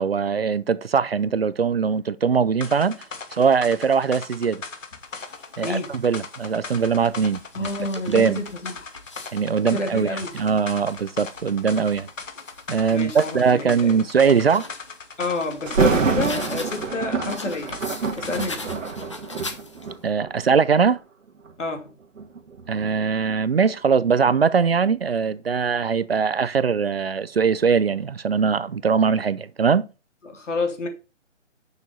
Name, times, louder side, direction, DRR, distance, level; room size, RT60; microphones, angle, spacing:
voice 1, 0.0-3.0 3.3-4.6 5.6-7.7 8.1-8.4 9.3-12.1 12.7-14.7 20.0-21.0 22.7-29.9, right 6 dB, 50° right, 0.6 m, -21 dB
sound 1, 2.6-18.7, left 4 dB, 85° left, 1.9 m, -39 dB
sound 2, 5.0-5.8 6.5-9.4 9.9-13.3 13.8-16.9 17.3-20.0, left 3 dB, 25° left, 0.8 m, -42 dB
voice 2, 5.6-6.0 7.5-8.9 9.6-10.3 12.9-14.0 15.2-17.7 18.2-18.7 21.6-21.9 30.2-30.9, left 3 dB, 70° left, 2.7 m, -29 dB
Thunder, 15.7-20.6 21.3-21.5 22.2-25.0 25.3-25.4, right 5 dB, 85° right, 1.7 m, -27 dB
7.0 x 6.4 x 5.5 m
hypercardioid pair, 170°, 38 cm